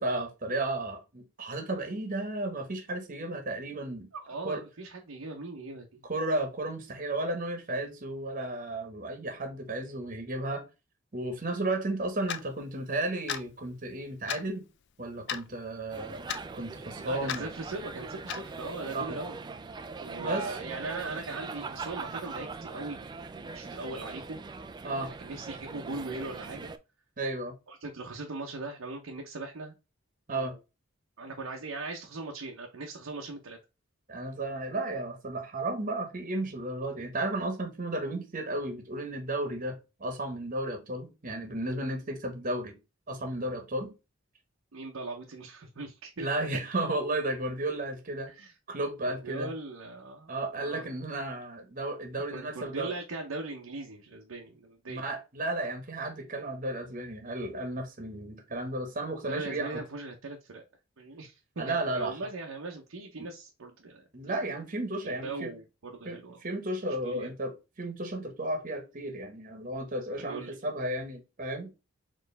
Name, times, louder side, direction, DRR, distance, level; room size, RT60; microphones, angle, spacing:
voice 1, 0.0-4.1 4.4-4.6 6.1-10.6 11.1-14.6 15.0-16.2 16.5-17.5 18.9-19.2 20.2-20.6 24.8-25.1 27.2-27.5 30.3-30.5 34.1-42.8 43.1-43.9 46.2-48.3 48.7-49.5 50.3-52.9 54.9-59.8 61.6-62.2 64.1-65.5 66.0-71.7, right 2 dB, 40° right, 1.1 m, -33 dB
voice 2, 4.1-6.0 17.0-19.4 20.0-24.4 24.8-26.7 27.7-29.7 30.4-30.6 31.2-33.6 44.7-46.3 48.3-48.5 49.2-50.3 50.6-50.9 52.3-55.1 59.3-60.6 61.0-64.4 65.0-66.4 67.0-67.3 70.2-70.6, right 3 dB, 80° right, 0.8 m, -40 dB
Clock, 12.3-12.4 13.3-13.5 14.3-14.5 15.3-15.5 16.3-16.4 17.3-17.4 18.3-18.5, left 9 dB, 55° left, 0.4 m, -33 dB
sound 1, 15.9-26.8, right 4 dB, 20° right, 0.3 m, -41 dB
4.4 x 3.1 x 3.2 m
head